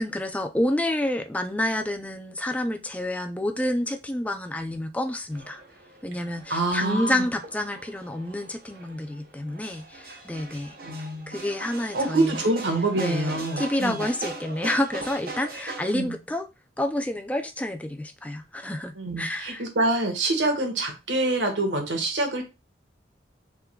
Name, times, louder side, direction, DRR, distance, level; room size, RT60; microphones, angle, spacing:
voice 1, 0.0-5.6 6.0-10.8 11.3-12.4 12.9-16.5 16.8-19.6, left 1 dB, 10° left, 0.4 m, -29 dB
sound 1, 5.3-15.9, right 3 dB, 50° right, 1.1 m, -40 dB
voice 2, 6.5-7.3 10.8-11.4 11.9-14.0 15.9-16.1 19.0-22.4, right 2 dB, 80° right, 1.5 m, -26 dB
5.6 x 3.7 x 2.3 m
head